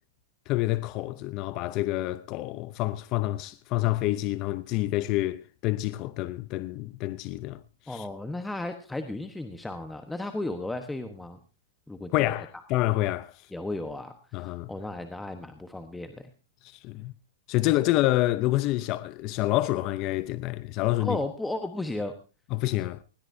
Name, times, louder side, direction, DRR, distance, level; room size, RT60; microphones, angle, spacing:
voice 1, 0.5-8.1 12.1-13.5 14.3-14.7 16.6-17.1 17.5-21.2 22.5-23.0, left 17 dB, 40° left, 0.6 m, -28 dB
voice 2, 7.9-11.4 11.9-12.3 13.5-16.3 21.0-22.1, left 2 dB, 5° left, 1.1 m, -34 dB
20.0 x 17.0 x 2.7 m
supercardioid pair, 150°, 0 cm